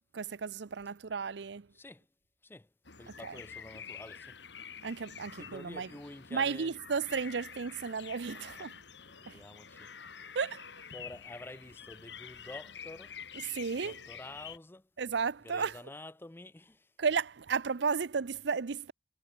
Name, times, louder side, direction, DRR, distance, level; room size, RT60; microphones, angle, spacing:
voice 1, 0.1-1.7 3.1-3.4 4.8-5.9 6.3-8.7 9.3-9.4 10.3-10.7 13.3-14.0 15.0-15.8 17.0-18.9, right 5 dB, 70° right, 0.6 m, -34 dB
voice 2, 1.7-2.1 2.4-2.7 3.0-4.4 5.3-6.7 8.6-8.7 9.0-9.9 10.9-13.2 13.8-14.9 15.4-16.9, left 2 dB, 10° left, 0.5 m, -49 dB
sound 1, 2.8-14.6, left 7 dB, 75° left, 2.8 m, -48 dB
head